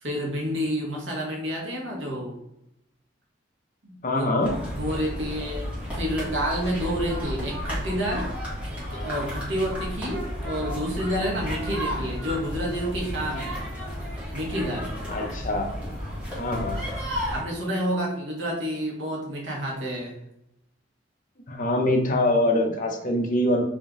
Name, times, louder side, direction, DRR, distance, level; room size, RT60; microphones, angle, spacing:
voice 1, 0.0-2.4 3.8-4.2 4.7-8.4 8.7-13.5 14.3-14.9 17.3-20.2, equal, 80° right, -1 dB, 1.1 m, -29 dB
voice 2, 4.0-4.6 15.1-15.8 16.4-17.0 21.5-23.6, left 1 dB, 45° left, 2 dB, 0.7 m, -24 dB
sound 1, 4.4-17.4, equal, 5° right, 1.4 m, -32 dB
3.6 x 2.6 x 3.6 m, 0.81 s
head